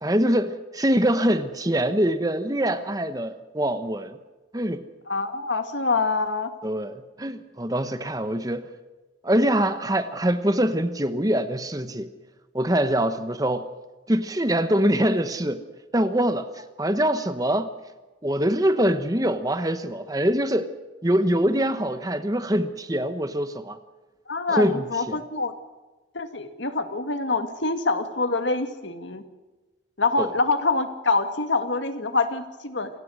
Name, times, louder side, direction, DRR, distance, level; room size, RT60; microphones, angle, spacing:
voice 1, 0.0-4.2 4.5-4.9 6.6-8.7 9.2-12.1 12.5-13.7 14.1-15.6 15.9-17.7 18.2-20.7 21.0-23.8 24.5-25.2 30.2-30.3, right 1 dB, 20° right, 11 dB, 1.0 m, -24 dB
voice 2, 5.1-6.5 24.3-25.5 26.1-29.2 30.0-32.9, left 3 dB, 75° left, 8 dB, 2.0 m, -25 dB
27.5 x 18.5 x 6.4 m, 1.2 s
head